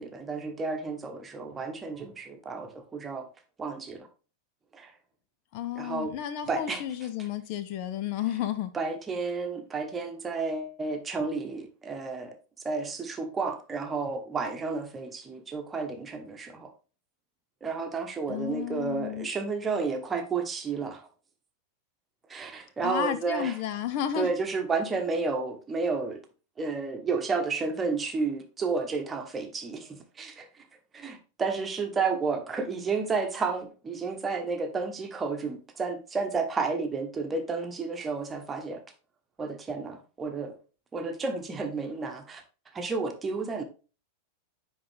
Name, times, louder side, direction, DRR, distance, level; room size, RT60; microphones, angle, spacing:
voice 1, 0.0-3.3 3.6-4.1 4.7-4.9 5.7-6.1 6.5-6.8 8.7-12.4 12.6-16.7 17.6-21.1 22.3-23.6 24.1-26.2 26.6-30.6 30.9-38.8 39.4-40.5 40.9-42.4 42.7-43.6, right 4 dB, 15° right, 1.1 m, -31 dB
voice 2, 5.5-8.7 18.3-19.3 22.8-24.3, left 10 dB, 45° left, 0.5 m, -32 dB
9.5 x 3.7 x 3.4 m
figure-of-eight pair, 90°, 0 cm